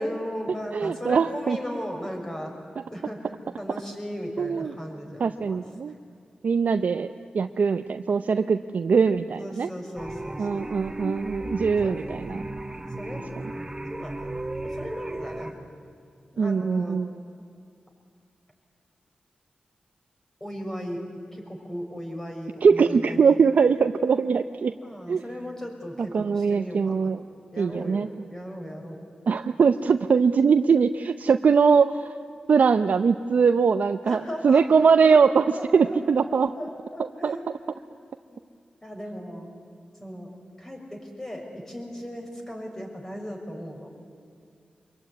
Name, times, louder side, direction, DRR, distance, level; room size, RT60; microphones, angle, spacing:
voice 1, 0.0-2.5 2.9-5.6 9.4-10.7 11.8-11.9 13.0-13.2 13.9-15.5 16.3-17.0 20.4-21.0 21.3-23.5 24.8-27.1 27.5-29.0 34.0-35.2 35.5-36.2 36.6-37.4 37.7-37.9 38.3-38.4 38.8-39.5 40.0-40.3 40.6-43.9, equal, 15° left, 1 dB, 6.3 m, -37 dB
voice 2, 0.7-1.6 4.4-4.7 5.2-5.9 6.4-9.7 10.4-12.4 16.4-17.1 22.6-24.7 25.1-25.2 26.1-27.2 27.6-28.1 29.3-32.1 32.5-35.5 35.7-36.5 37.2-37.4, right 5 dB, 70° right, 8 dB, 0.6 m, -21 dB
sound 1, 10.0-15.5, right 1 dB, 20° right, 1.9 m, -35 dB
25.5 x 22.0 x 9.8 m, 2.3 s
wide cardioid pair, 85°, 3 cm